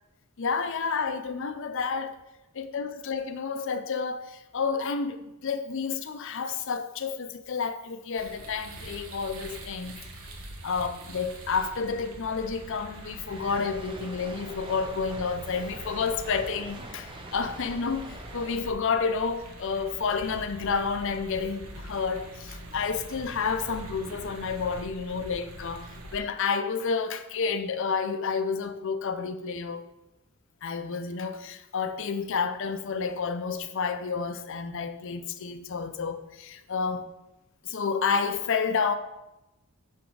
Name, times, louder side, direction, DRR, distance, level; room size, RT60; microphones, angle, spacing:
voice 1, 0.4-2.2 2.5-10.0 10.6-29.9 30.6-37.1 37.6-38.9, left 5 dB, 55° left, 0.5 m, -30 dB
sound 1, 8.2-26.2, right 1 dB, 65° right, 1.2 m, -44 dB
sound 2, 12.4-20.4, right 2 dB, 20° right, 0.6 m, -46 dB
6.2 x 6.1 x 4.7 m
head